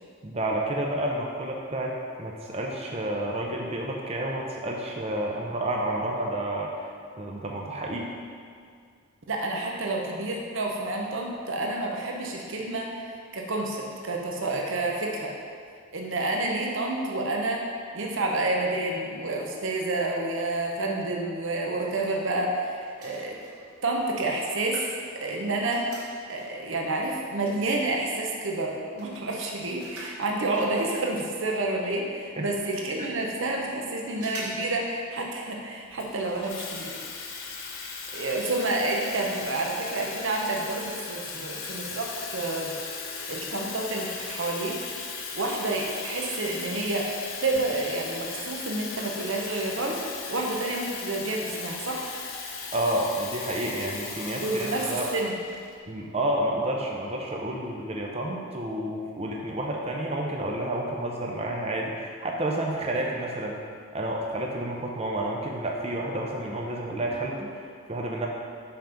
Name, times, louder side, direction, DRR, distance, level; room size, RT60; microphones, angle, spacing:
voice 1, 0.2-6.9 7.2-8.1 32.4-32.5 52.7-55.1 55.9-63.6 63.9-68.3, right 1 dB, 25° right, -1 dB, 0.6 m, -30 dB
voice 2, 9.3-15.3 15.9-17.7 17.9-23.4 23.8-24.9 25.1-25.9 26.3-37.0 38.1-42.7 43.3-44.8 45.3-50.0 50.3-52.1 54.4-55.3 63.0-63.1, right 2 dB, 55° right, 0 dB, 0.8 m, -29 dB
sound 1, 21.9-22.6 22.9-26.8 27.4-27.5 27.7-31.3 31.6-31.7 31.8-31.9 32.5-32.6 32.9-33.8 34.1-34.7 35.0-35.1 36.1-36.4 36.7-36.8 37.3-37.4 37.7-37.8, right 2 dB, 80° right, 1.8 m, -47 dB
Water tap faucet / Fill (with liquid), 36.0-55.7, left 5 dB, 55° left, 0.8 m, -37 dB
5.7 x 5.1 x 5.8 m, 2.2 s
head